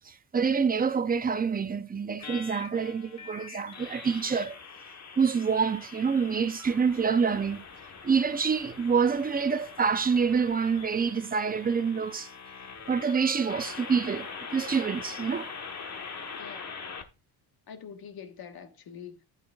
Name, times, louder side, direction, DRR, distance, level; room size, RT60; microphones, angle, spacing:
voice 1, 0.0-4.6 5.2-7.6 8.0-12.3 12.9-15.5, right 6 dB, 20° right, 0.6 m, -27 dB
sound 1, 2.2-17.0, left 5 dB, 35° left, 1.4 m, -43 dB
voice 2, 16.3-16.8 17.7-19.2, left 7 dB, 50° left, 1.5 m, -45 dB
9.8 x 8.6 x 2.4 m
cardioid pair, 100°, 47 cm